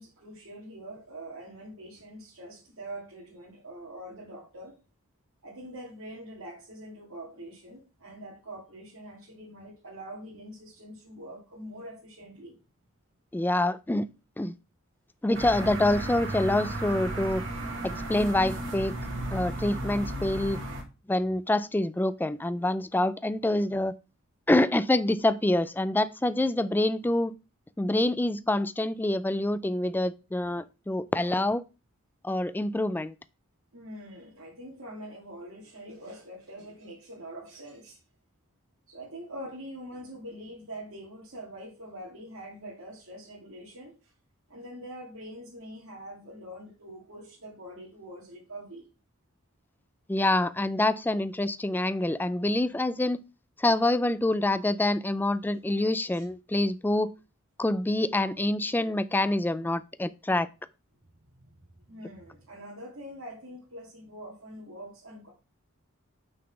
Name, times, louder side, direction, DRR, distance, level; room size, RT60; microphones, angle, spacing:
voice 1, 0.0-4.7 5.4-12.6 33.7-38.0 38.9-44.1 44.5-48.9 56.1-56.2 61.3-61.5 61.8-65.3, right 1 dB, 80° right, 2.2 m, -44 dB
voice 2, 13.3-14.1 14.4-14.5 15.2-17.4 17.8-18.9 19.3-20.6 21.1-23.9 24.5-27.3 27.8-31.6 32.2-33.1 50.1-53.2 53.6-57.1 57.6-60.5, left 1 dB, 10° left, 0.3 m, -26 dB
sound 1, 15.3-20.8, right 1 dB, 65° right, 2.4 m, -34 dB
6.2 x 4.1 x 5.7 m
head